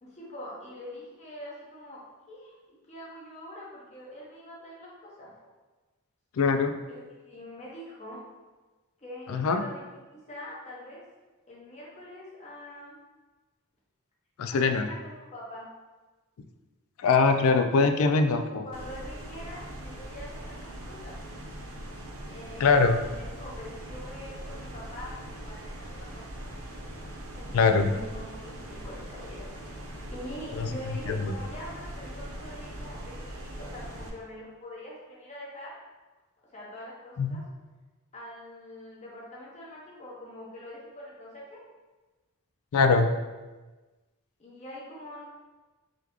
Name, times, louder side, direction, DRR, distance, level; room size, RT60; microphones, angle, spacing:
voice 1, 0.0-2.0 2.3-5.3 6.9-8.2 9.0-11.0 11.5-13.0 14.5-15.7 18.5-21.2 22.3-26.2 27.3-35.8 36.5-37.4 38.1-41.6 44.4-45.2, left 1 dB, 30° left, -5 dB, 0.9 m, -44 dB
voice 2, 6.4-6.7 9.3-9.6 14.4-14.9 17.0-18.6 22.6-23.0 27.5-27.9 30.6-30.7 31.1-31.3 37.2-37.4 42.7-43.1, left 4 dB, 65° left, 7 dB, 0.3 m, -22 dB
sound 1, 18.7-34.1, right 1 dB, 60° right, 0.7 m, -41 dB
3.8 x 3.3 x 3.0 m, 1.2 s
head